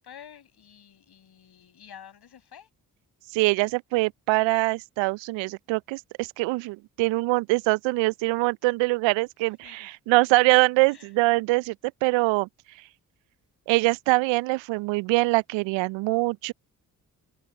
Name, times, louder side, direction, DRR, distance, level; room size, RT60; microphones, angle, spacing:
voice 1, 0.0-2.7 9.6-9.9 10.9-11.1, left 9 dB, 55° left, 6.8 m, -49 dB
voice 2, 3.3-11.7 12.0-12.5 13.7-16.5, right 23 dB, 70° right, 0.8 m, -23 dB
hypercardioid pair, 40°, 48 cm